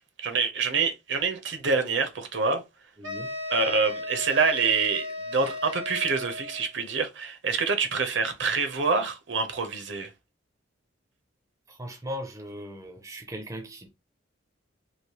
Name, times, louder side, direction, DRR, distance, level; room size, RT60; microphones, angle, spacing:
voice 1, 0.2-2.6 3.5-10.1, right 4 dB, 60° right, 0.7 m, -26 dB
voice 2, 3.0-3.3 11.7-13.9, equal, 15° right, 0.5 m, -38 dB
sound 1, 3.0-6.7, left 2 dB, 85° right, 1.3 m, -35 dB
3.2 x 2.5 x 2.9 m
head